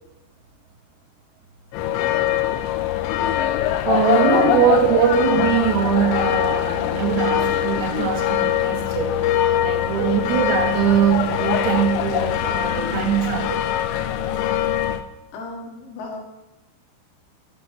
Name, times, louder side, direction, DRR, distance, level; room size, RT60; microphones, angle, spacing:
sound 1, 1.7-15.0, left 11 dB, 90° left, 2.6 m, -22 dB
voice 1, 3.8-9.2 9.6-13.6, right 8 dB, 85° right, 0 dB, 4.2 m, -21 dB
voice 2, 15.3-16.2, left 3 dB, 70° left, 1 dB, 3.7 m, -35 dB
14.0 x 9.1 x 3.2 m, 1.0 s
omnidirectional pair, 6.0 m